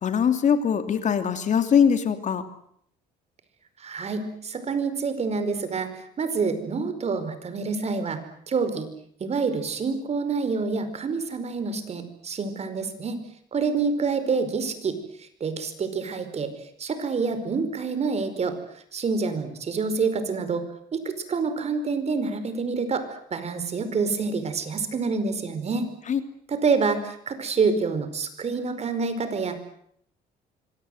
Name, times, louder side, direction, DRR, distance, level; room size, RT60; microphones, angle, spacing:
voice 1, 0.0-2.4 26.1-26.2, left 7 dB, 45° left, 8 dB, 2.9 m, -22 dB
voice 2, 3.8-8.2 8.5-8.9 9.2-13.2 13.5-16.5 16.8-20.6 20.9-23.0 23.3-25.9 26.5-29.6, right 4 dB, 40° right, 10 dB, 5.0 m, -27 dB
26.0 x 23.0 x 8.0 m, 0.68 s
cardioid pair, 110°, 17 cm